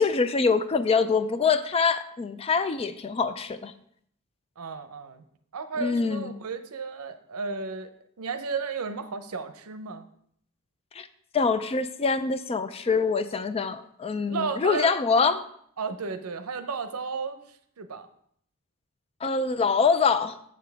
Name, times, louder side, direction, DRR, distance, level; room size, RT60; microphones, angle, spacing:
voice 1, 0.0-3.7 5.8-6.3 11.0-11.1 11.3-15.4 19.2-20.4, left 5 dB, 25° left, 11 dB, 0.3 m, -24 dB
voice 2, 4.6-5.2 5.5-7.9 8.2-10.1 14.3-14.9 15.8-18.1, right 4 dB, 80° right, 9 dB, 0.6 m, -33 dB
7.5 x 6.9 x 3.4 m, 0.67 s
head